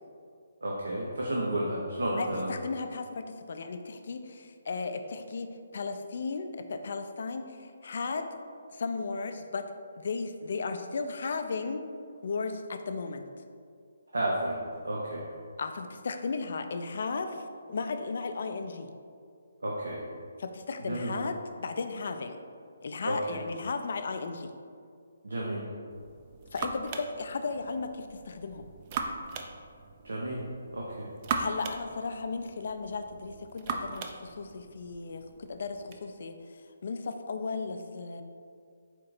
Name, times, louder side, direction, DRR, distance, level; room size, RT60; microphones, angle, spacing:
voice 1, 0.6-2.5 14.1-15.2 19.6-20.0 20.8-21.1 23.0-23.4 25.2-25.7 30.0-30.4 30.7-31.1, right 1 dB, 80° right, -3 dB, 0.6 m, -32 dB
voice 2, 2.2-8.3 8.7-9.7 10.0-11.9 12.2-13.3 15.6-18.9 20.4-22.4 22.8-24.5 26.5-28.7 31.4-38.2, left 4 dB, 60° left, 7 dB, 0.3 m, -35 dB
sound 1, 25.9-36.0, right 4 dB, 35° right, 0.3 m, -39 dB
4.3 x 2.7 x 3.9 m, 2.2 s
figure-of-eight pair, 145°, 0 cm